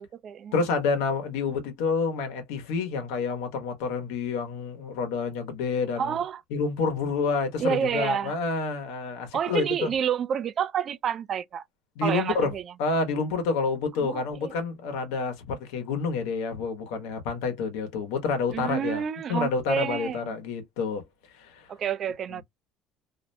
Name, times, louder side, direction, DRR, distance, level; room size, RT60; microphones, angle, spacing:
voice 1, 0.0-0.5 6.0-6.4 7.6-8.4 9.3-11.6 12.0-12.6 14.0-14.5 18.5-20.3 21.7-22.4, right 8 dB, 45° right, 0.3 m, -29 dB
voice 2, 0.5-6.1 6.5-9.9 12.0-12.5 12.8-19.0 19.3-21.0 21.3-21.7, left 4 dB, 90° left, 1.0 m, -28 dB
2.5 x 2.1 x 2.6 m
cardioid pair, 120°, 0 cm